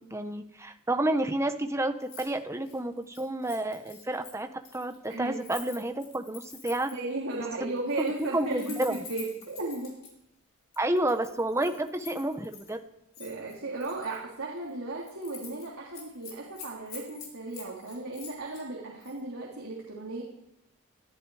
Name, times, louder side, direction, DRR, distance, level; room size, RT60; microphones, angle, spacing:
voice 1, 0.0-6.9 7.6-7.7 8.3-9.0 10.8-12.8, right 1 dB, 15° right, 7 dB, 1.0 m, -30 dB
Keys jangling, 2.0-2.3 2.6-7.1 7.8-10.1 10.7-12.7 13.1-14.2 14.6-14.7 15.0-15.7 15.9-18.6 19.0-19.2, left 6 dB, 65° left, 6.9 m, -47 dB
voice 2, 6.9-8.8 9.1-10.0 13.2-20.2, right 2 dB, 70° right, -3 dB, 3.4 m, -35 dB
21.0 x 13.5 x 4.9 m, 0.84 s
head